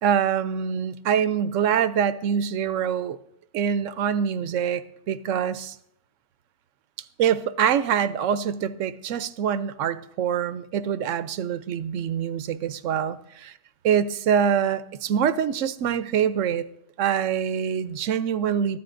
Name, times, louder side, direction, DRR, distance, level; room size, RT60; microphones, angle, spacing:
voice 1, 0.0-3.2 3.5-5.7 7.2-13.2 13.8-16.6 17.0-18.8, right 8 dB, 75° right, 14 dB, 1.0 m, -24 dB
23.5 x 13.5 x 2.6 m, 0.77 s
omnidirectional pair, 1.3 m